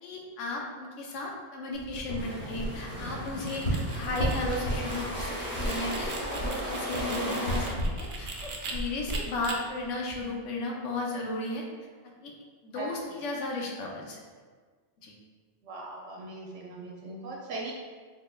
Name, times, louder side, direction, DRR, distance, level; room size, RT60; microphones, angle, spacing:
voice 1, 0.0-11.6 12.2-12.3 12.6-14.2 15.0-15.1, left 2 dB, 85° left, -1 dB, 1.0 m, -35 dB
Pillow fluff up, 1.7-10.2, equal, 55° left, 1.1 m, -35 dB
sound 1, 2.2-7.7, equal, 10° left, 0.9 m, -36 dB
sound 2, 3.2-8.7 9.1-9.5, right 4 dB, 60° right, 0.5 m, -42 dB
voice 2, 15.6-17.7, right 2 dB, 80° right, -3 dB, 0.9 m, -39 dB
3.9 x 3.2 x 2.2 m, 1.5 s
omnidirectional pair, 1.2 m